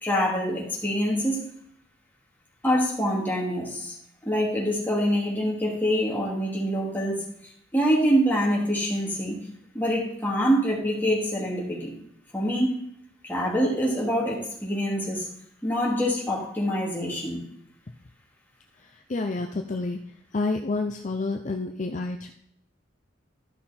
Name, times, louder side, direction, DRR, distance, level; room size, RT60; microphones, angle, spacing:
voice 1, 0.0-1.4 2.6-3.9 4.2-7.2 7.7-9.4 9.7-11.9 12.3-12.8 13.2-15.3 15.6-17.4, equal, 10° left, -4 dB, 2.6 m, -25 dB
voice 2, 18.9-20.0 20.3-22.3, left 3 dB, 40° left, 4 dB, 0.6 m, -29 dB
13.0 x 5.7 x 4.3 m, 0.70 s
head